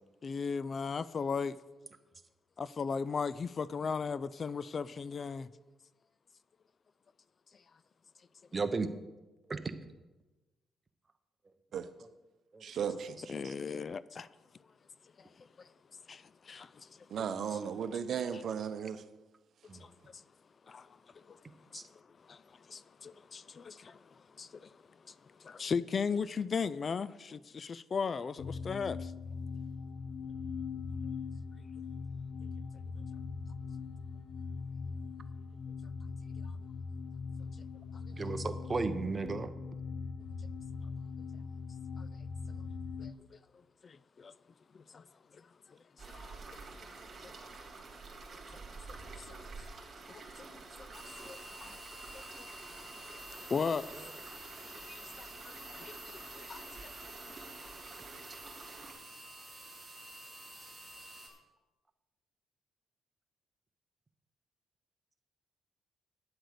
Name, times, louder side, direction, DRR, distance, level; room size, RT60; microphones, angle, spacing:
voice 1, 0.2-1.6 2.6-5.5 13.3-14.3 15.2-15.3 15.6-15.7 16.1-17.6 18.3-18.4 19.7-20.2 20.7-20.9 21.1-21.4 21.7-29.1 42.0-42.1 43.0-43.4 43.8-44.3 44.7-45.0 45.3-45.8 46.1-46.4 46.8-46.9 47.2-47.3 48.5-48.6 48.9-49.4 50.1-51.8 52.1-52.2 52.7-53.1 53.5-53.9 54.6-56.9 57.2-57.7, left 5 dB, 40° left, 0.3 m, -38 dB
voice 2, 8.5-8.9 9.5-9.6 12.5-12.6 19.7-19.8 21.7-21.8 38.2-39.5, right 4 dB, 25° right, 0.9 m, -34 dB
voice 3, 12.6-13.2 17.1-19.0, right 7 dB, 60° right, 0.8 m, -35 dB
sound 1, 28.4-43.1, left 5 dB, 70° left, 0.7 m, -41 dB
sound 2, 46.0-58.9, right 3 dB, 40° right, 2.9 m, -49 dB
sound 3, 50.9-61.3, right 1 dB, 10° left, 4.0 m, -49 dB
9.7 x 7.9 x 6.6 m
cardioid pair, 90°, 0 cm